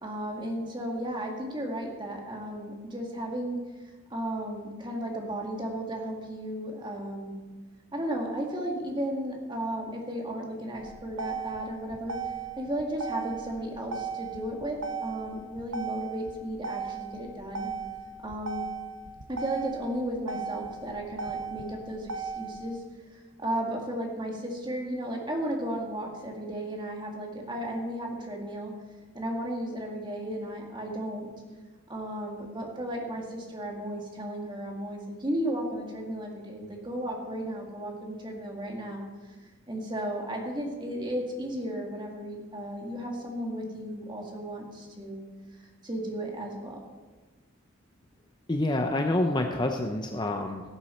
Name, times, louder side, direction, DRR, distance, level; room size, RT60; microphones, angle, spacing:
voice 1, 0.0-3.6 4.1-7.3 7.9-17.7 18.2-18.6 19.3-22.8 23.1-28.7 29.1-31.3 31.9-39.0 39.7-45.2 45.8-46.8, right 1 dB, 20° right, 0 dB, 2.0 m, -34 dB
Motor vehicle (road), 10.7-22.7, right 5 dB, 70° right, 1.0 m, -37 dB
voice 2, 48.5-50.6, left 1 dB, 20° left, 4 dB, 0.6 m, -27 dB
17.5 x 7.3 x 4.4 m, 1.3 s
head